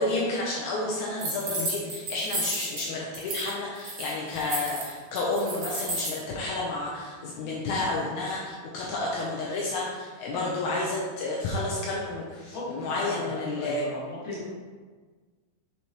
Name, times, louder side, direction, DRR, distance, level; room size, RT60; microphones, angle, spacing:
voice 1, 0.0-13.9, left 2 dB, 80° left, -4 dB, 2.1 m, -30 dB
sound 1, 1.2-2.8 3.1-3.5 3.8-6.2, right 1 dB, 50° right, 2.1 m, -32 dB
voice 2, 12.5-14.5, left 1 dB, 45° left, -7 dB, 2.4 m, -36 dB
6.1 x 5.8 x 3.0 m, 1.5 s
omnidirectional pair, 3.6 m